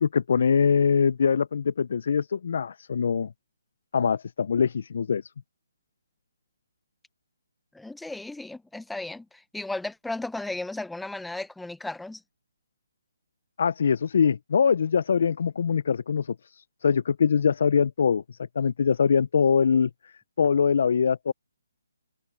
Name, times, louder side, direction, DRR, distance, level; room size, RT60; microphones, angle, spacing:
voice 1, 0.0-3.3 3.9-5.3 13.6-21.3, left 6 dB, 55° left, 0.7 m, -23 dB
voice 2, 7.7-12.2, left 2 dB, 5° left, 1.1 m, -35 dB
hypercardioid pair, 150°, 0 cm